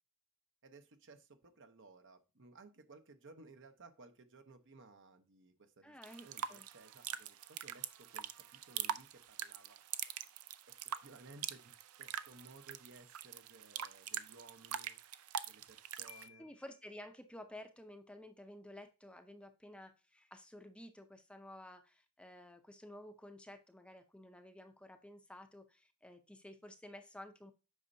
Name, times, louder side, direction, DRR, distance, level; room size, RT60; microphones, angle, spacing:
voice 1, 0.6-9.8 10.7-11.7 12.0-15.0 15.5-16.5, right 3 dB, 60° right, 8 dB, 0.9 m, -59 dB
voice 2, 5.8-6.7 16.4-27.5, left 1 dB, 5° left, 7 dB, 0.6 m, -53 dB
sound 1, 6.0-16.3, right 10 dB, 80° right, 0.5 m, -44 dB
Piano, 16.1-17.0, left 10 dB, 75° left, 0.5 m, -60 dB
8.3 x 5.4 x 2.7 m, 0.30 s
head